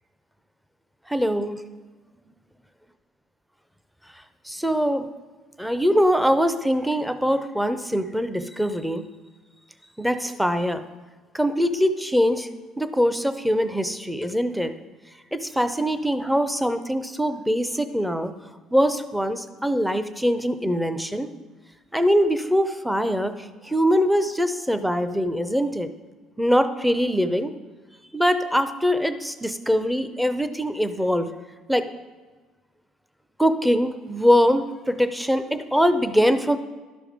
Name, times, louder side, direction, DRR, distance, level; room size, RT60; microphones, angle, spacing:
voice 1, 1.1-1.6 4.5-5.1 5.6-9.0 10.0-10.8 11.3-12.5 12.8-14.7 15.3-18.3 18.7-21.3 21.9-23.3 23.6-25.9 26.4-27.5 28.1-31.3 31.7-31.9 33.4-36.6, equal, ahead, 10 dB, 0.5 m, -22 dB
12.0 x 5.1 x 5.0 m, 1.3 s
cardioid pair, 120°, 0 cm